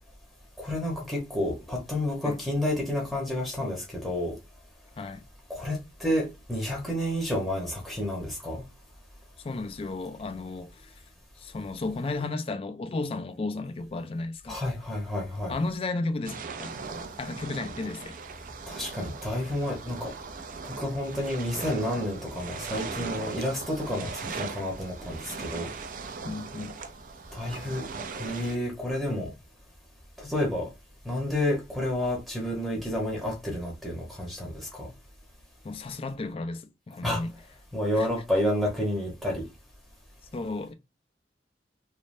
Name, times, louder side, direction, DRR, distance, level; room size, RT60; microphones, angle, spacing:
voice 1, 0.6-4.4 5.5-8.6 14.5-15.5 18.7-20.1 20.6-25.7 27.3-27.8 28.1-29.3 30.2-30.7 31.0-34.9 37.0-37.2 37.7-39.5, left 1 dB, ahead, 0.8 m, -30 dB
voice 2, 9.4-10.9 11.4-14.6 15.5-16.7 17.2-18.2 26.2-26.8 35.6-37.3 38.0-38.1 40.3-40.7, left 3 dB, 30° left, 0.3 m, -33 dB
sound 1, 16.2-28.6, right 4 dB, 50° right, 0.4 m, -39 dB
3.2 x 2.0 x 2.5 m
head